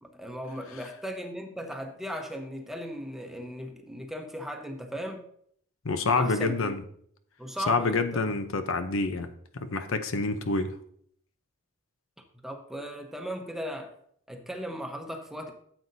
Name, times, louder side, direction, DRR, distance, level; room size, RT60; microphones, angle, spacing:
voice 1, 0.0-5.2 6.2-6.7 7.4-8.3 12.4-13.9 14.3-15.5, equal, ahead, 3 dB, 1.0 m, -37 dB
voice 2, 5.8-6.8 7.7-9.3 9.5-10.8, left 3 dB, 70° left, 9 dB, 0.7 m, -27 dB
13.5 x 7.9 x 2.7 m, 0.64 s
head